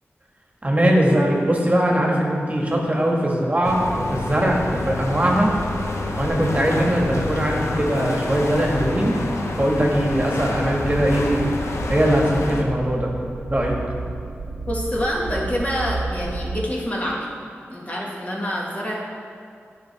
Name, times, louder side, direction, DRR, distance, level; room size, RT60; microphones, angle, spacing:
voice 1, 0.6-5.5 6.2-9.2 9.6-11.5 11.9-13.8, right 1 dB, 30° right, -1 dB, 1.5 m, -21 dB
sound 1, 3.6-12.6, left 2 dB, 80° left, 0.8 m, -28 dB
sound 2, 9.5-16.6, right 3 dB, 85° right, 0.4 m, -33 dB
voice 2, 14.7-17.3 17.7-18.9, equal, 30° left, -4 dB, 1.9 m, -26 dB
9.4 x 5.8 x 4.6 m, 2.3 s
cardioid pair, 45°, 5 cm